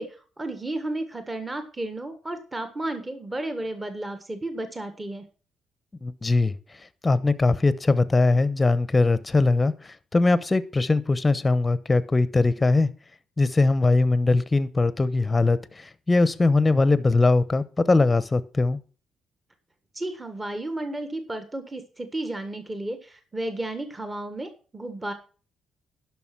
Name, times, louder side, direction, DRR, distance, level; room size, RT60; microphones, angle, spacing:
voice 1, 0.0-5.2 19.9-25.1, right 1 dB, 20° right, 1.5 m, -33 dB
voice 2, 6.0-6.5 7.0-12.9 13.4-18.8, left 3 dB, 20° left, 0.9 m, -21 dB
11.0 x 6.0 x 6.0 m
cardioid pair, 90°, 0 cm